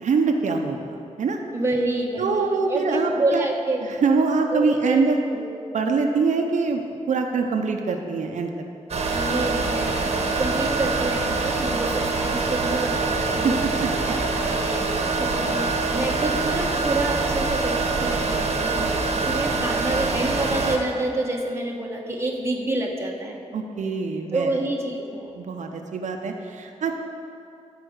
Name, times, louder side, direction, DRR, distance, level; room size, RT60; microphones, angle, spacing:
voice 1, 0.0-0.8 1.2-1.4 2.2-3.5 4.0-5.2 5.7-6.8 7.1-8.5 13.2-14.5 23.5-24.5 25.4-26.9, right 4 dB, 80° right, 4 dB, 0.7 m, -24 dB
voice 2, 1.5-3.8 4.5-5.4 9.1-10.1 10.4-13.6 14.5-23.4 24.3-25.3, right 2 dB, 20° right, 0 dB, 1.2 m, -28 dB
sound 1, 8.9-20.8, right 3 dB, 60° right, 1.1 m, -24 dB
14.0 x 4.9 x 6.5 m, 2.6 s
wide cardioid pair, 150°, 12 cm